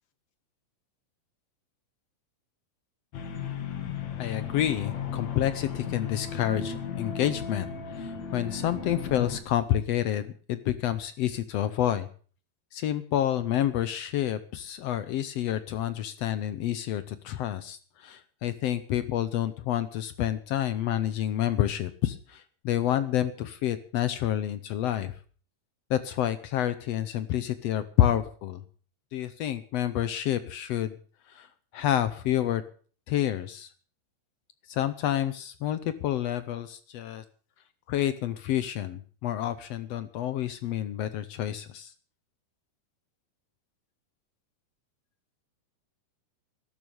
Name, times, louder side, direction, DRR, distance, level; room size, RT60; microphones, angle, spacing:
sound 1, 3.1-9.4, left 7 dB, 60° left, 2.8 m, -35 dB
voice 1, 4.2-12.1 12.7-25.1 25.9-28.6 29.1-31.0 31.3-31.5 31.7-32.6 33.1-33.7 34.7-37.2 37.9-41.9, left 11 dB, 75° left, 13 dB, 1.5 m, -29 dB
12.5 x 12.5 x 6.9 m, 0.42 s
omnidirectional pair, 3.8 m